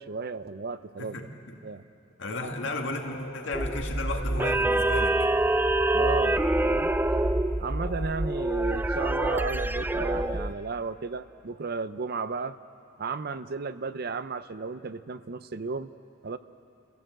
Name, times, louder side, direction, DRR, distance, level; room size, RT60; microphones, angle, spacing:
voice 1, 0.0-1.1 1.6-1.8 2.4-2.6 5.9-6.9 7.6-12.6 13.0-15.9 16.2-16.4, right 4 dB, 55° right, 12 dB, 0.6 m, -34 dB
voice 2, 1.0-1.6 2.2-5.2, left 2 dB, 65° left, 2 dB, 2.0 m, -34 dB
sound 1, 2.3-8.8, left 2 dB, 90° left, 3.3 m, -44 dB
sound 2, 3.5-10.5, right 1 dB, 10° right, 0.5 m, -26 dB
29.0 x 16.0 x 7.8 m, 2.6 s
head